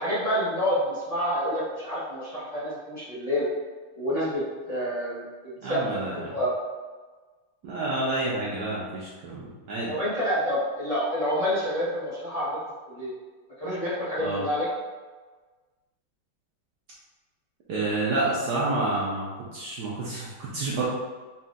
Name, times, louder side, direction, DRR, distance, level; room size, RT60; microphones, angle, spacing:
voice 1, 0.0-3.5 4.0-6.5 9.9-12.6 12.9-13.1 13.6-14.7, equal, 30° left, -10 dB, 0.7 m, -28 dB
voice 2, 5.6-6.2 7.6-9.9 14.2-14.4 17.7-20.8, right 2 dB, 65° right, -6 dB, 1.1 m, -29 dB
4.3 x 3.7 x 2.4 m, 1.4 s
omnidirectional pair, 2.2 m